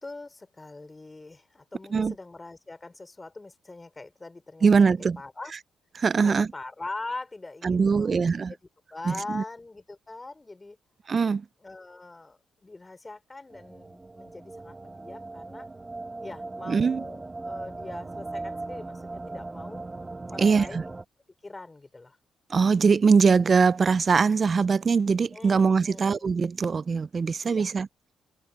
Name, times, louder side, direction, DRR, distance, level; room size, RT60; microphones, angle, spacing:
voice 1, 0.0-4.8 5.2-5.5 6.2-8.2 8.9-10.8 11.6-15.7 16.2-19.8 20.3-20.9 21.4-22.2 25.3-26.3 27.4-27.7, left 2 dB, 20° left, 4.2 m, -42 dB
voice 2, 4.6-5.2 6.0-6.5 7.6-8.5 9.1-9.4 11.1-11.5 16.7-17.0 20.4-20.8 22.5-27.9, right 5 dB, 35° right, 0.3 m, -22 dB
sound 1, 13.5-21.0, right 2 dB, 20° right, 1.1 m, -39 dB
cardioid pair, 115°, 0 cm